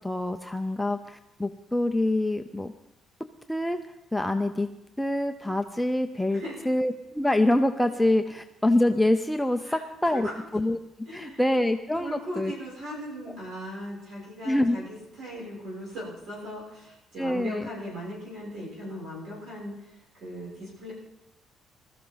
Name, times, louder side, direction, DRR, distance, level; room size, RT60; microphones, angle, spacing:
voice 1, 0.0-2.7 3.5-3.8 4.1-4.7 5.0-10.8 11.1-12.5 14.5-14.8 17.2-17.7, left 1 dB, 5° left, 6 dB, 0.5 m, -25 dB
voice 2, 11.1-11.4 12.0-20.9, equal, 60° right, -5 dB, 6.7 m, -38 dB
20.5 x 13.5 x 3.9 m, 0.89 s
cardioid pair, 155°, 0 cm